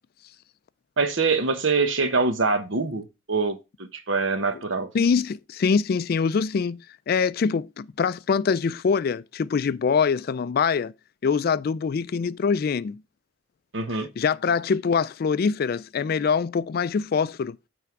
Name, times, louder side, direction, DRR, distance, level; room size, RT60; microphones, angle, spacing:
voice 1, 1.0-4.9 13.7-14.1, right 4 dB, 65° right, 1.1 m, -24 dB
voice 2, 4.9-6.8 7.1-10.9 11.2-13.0 14.2-17.6, left 5 dB, 50° left, 0.3 m, -24 dB
9.4 x 3.5 x 5.8 m
head